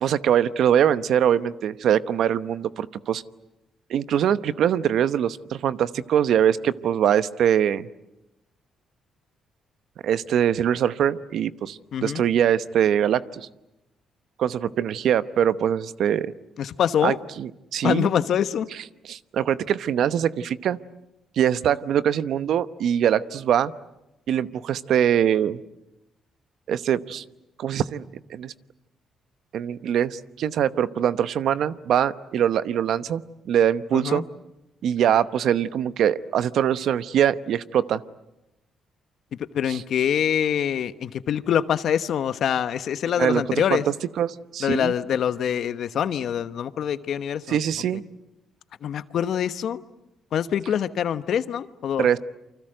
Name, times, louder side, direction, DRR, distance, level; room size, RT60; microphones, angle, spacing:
voice 1, 0.0-3.2 3.9-7.9 10.0-13.5 14.4-16.3 17.0-18.1 19.1-20.8 21.4-23.7 24.3-25.6 26.7-27.2 27.6-28.5 29.5-34.2 34.8-38.0 39.7-39.8 43.2-43.8 44.2-44.9 47.5-48.0 52.0-52.2, right 9 dB, 70° right, 14 dB, 0.9 m, -23 dB
voice 2, 11.9-12.2 16.6-17.2 17.8-18.7 33.9-34.2 39.5-43.8 44.6-47.6 48.8-49.8 50.3-52.1, left 9 dB, 65° left, 13 dB, 1.1 m, -25 dB
29.0 x 25.0 x 7.9 m, 0.92 s
cardioid pair, 90°, 0 cm